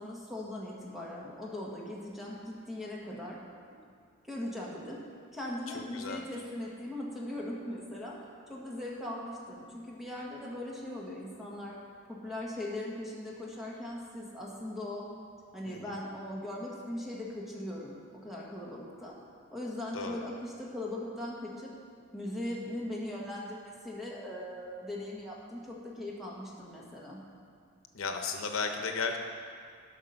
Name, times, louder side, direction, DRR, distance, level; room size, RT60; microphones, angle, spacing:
voice 1, 0.0-3.4 4.2-5.0 5.3-8.2 8.5-11.8 12.0-19.2 19.5-21.7 22.1-27.2, left 1 dB, ahead, -5 dB, 1.6 m, -39 dB
voice 2, 15.7-16.0 19.9-20.2 27.9-29.2, left 4 dB, 90° left, 5 dB, 0.9 m, -34 dB
12.0 x 6.0 x 5.7 m, 2.2 s
head